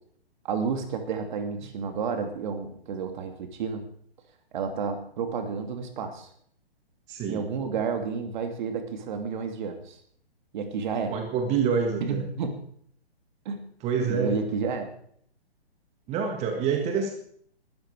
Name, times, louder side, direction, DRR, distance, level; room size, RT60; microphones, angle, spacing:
voice 1, 0.4-3.9 4.5-6.3 7.3-10.0 10.5-11.2 12.0-12.6 13.4-13.6 14.1-14.8, right 5 dB, 45° right, 7 dB, 2.7 m, -31 dB
voice 2, 7.1-7.4 11.1-12.2 13.8-14.4 16.1-17.1, right 6 dB, 20° right, 4 dB, 1.8 m, -26 dB
19.0 x 13.0 x 4.9 m, 0.62 s
figure-of-eight pair, 130°, 32 cm